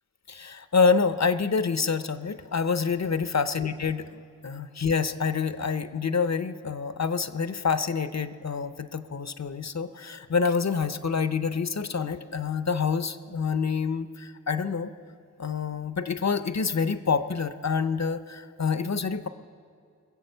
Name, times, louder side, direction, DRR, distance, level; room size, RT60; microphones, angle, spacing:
voice 1, 0.3-4.0 4.4-14.1 14.5-14.9 15.4-19.3, left 5 dB, 60° left, 12 dB, 0.7 m, -27 dB
21.5 x 8.0 x 6.7 m, 2.3 s
wide cardioid pair, 45°, 31 cm